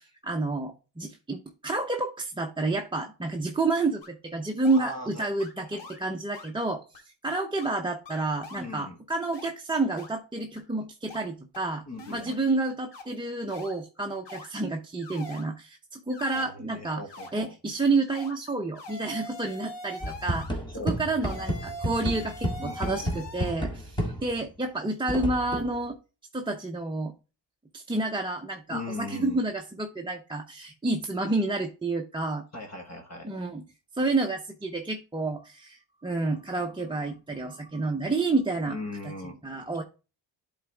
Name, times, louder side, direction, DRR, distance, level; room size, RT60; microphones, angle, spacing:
voice 1, 0.0-11.8 12.1-17.0 17.3-20.5 20.8-26.0 26.3-27.1 27.7-32.5 33.2-33.6 33.9-38.8 39.4-39.8, right 3 dB, 10° right, 1 dB, 0.7 m, -29 dB
sound 1, 4.0-4.1 4.6-4.9 5.4-5.5 5.8-6.0 6.3-6.5 6.9-7.0 7.3-7.7 8.1-8.7 9.3-9.5 10.0-10.1 10.6-10.7 11.1-11.2 11.5-11.6 12.0-12.4 12.9-13.0 13.5-13.7 14.2-14.5 15.0-15.5 16.1-16.5 17.1-17.3 18.1-18.3 18.7-20.6 21.2-23.5, left 1 dB, 65° left, 2.8 m, -42 dB
voice 2, 4.8-5.3 5.6-5.9 8.6-9.0 11.9-12.4 16.3-17.5 20.7-21.0 22.6-23.2 28.7-29.4 32.5-33.3 38.6-39.4, left 2 dB, 35° left, 3 dB, 1.7 m, -39 dB
sound 2, 20.0-24.5 25.1-25.8, equal, 10° left, 1.7 m, -32 dB
11.0 x 4.0 x 3.4 m, 0.32 s
cardioid pair, 105°, 45 cm